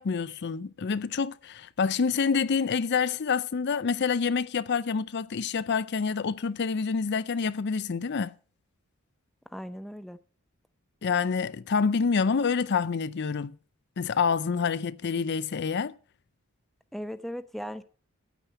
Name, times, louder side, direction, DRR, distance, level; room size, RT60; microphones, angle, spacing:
voice 1, 0.0-8.3 11.0-13.5 14.0-16.0, left 5 dB, 50° left, 0.5 m, -27 dB
voice 2, 9.5-10.2 16.9-17.8, equal, ahead, 0.6 m, -37 dB
9.8 x 9.1 x 6.7 m
head